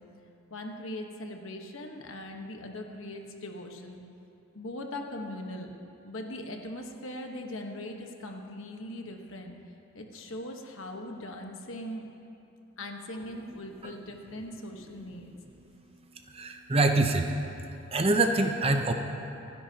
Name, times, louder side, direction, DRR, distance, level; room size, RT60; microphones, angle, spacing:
voice 1, 0.5-4.0 4.5-5.7 6.0-9.6 9.9-12.1 12.8-15.4, left 1 dB, 60° left, 3 dB, 1.2 m, -40 dB
voice 2, 16.3-17.3 17.9-18.9, right 2 dB, 25° right, 5 dB, 0.6 m, -25 dB
28.0 x 10.5 x 2.9 m, 2.9 s
head